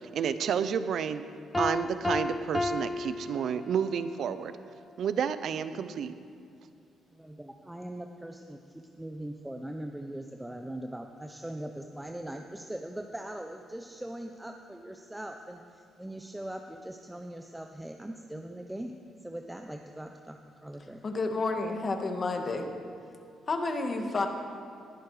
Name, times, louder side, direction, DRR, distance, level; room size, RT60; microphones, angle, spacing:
voice 1, 0.1-1.2 1.6-4.5 5.0-6.1, right 7 dB, 65° right, 12 dB, 0.8 m, -30 dB
Piano, 1.5-4.1, left 2 dB, 15° left, 0.5 m, -32 dB
voice 2, 7.1-18.9 19.2-21.0, right 1 dB, 10° right, 4 dB, 0.8 m, -41 dB
voice 3, 21.0-22.7 23.5-24.3, left 3 dB, 40° left, 4 dB, 1.8 m, -30 dB
19.5 x 11.0 x 5.0 m, 2.5 s
cardioid pair, 90°, 0 cm